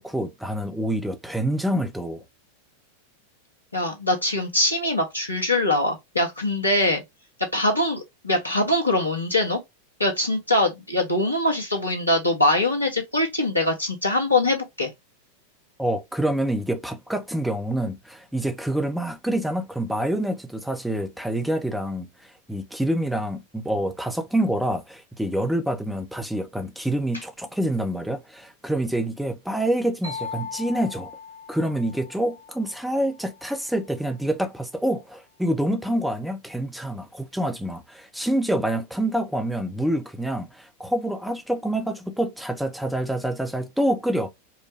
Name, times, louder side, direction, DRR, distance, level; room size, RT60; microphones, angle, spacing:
voice 1, 0.0-2.2 15.8-31.1 31.5-44.3, right 1 dB, ahead, 0.7 m, -27 dB
voice 2, 3.7-7.0 7.5-9.6 10.0-14.9, left 1 dB, 85° left, 1.3 m, -23 dB
sound 1, 30.0-33.7, left 5 dB, 65° right, 1.8 m, -39 dB
4.6 x 2.2 x 3.3 m
figure-of-eight pair, 90°, 0 cm